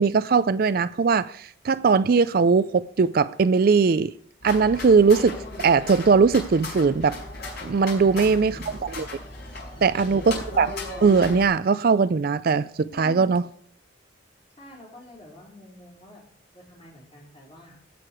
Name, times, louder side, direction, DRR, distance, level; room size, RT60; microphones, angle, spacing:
voice 1, 0.0-4.1 4.4-7.2 7.6-9.1 9.8-10.7 11.0-13.4, right 5 dB, 45° right, 0.4 m, -20 dB
sound 1, 4.4-11.5, left 2 dB, 55° left, 5.1 m, -36 dB
voice 2, 7.9-8.8 9.7-10.3 12.9-13.3 14.6-16.2 16.5-17.8, equal, 30° left, 4.5 m, -46 dB
16.0 x 6.6 x 4.8 m
head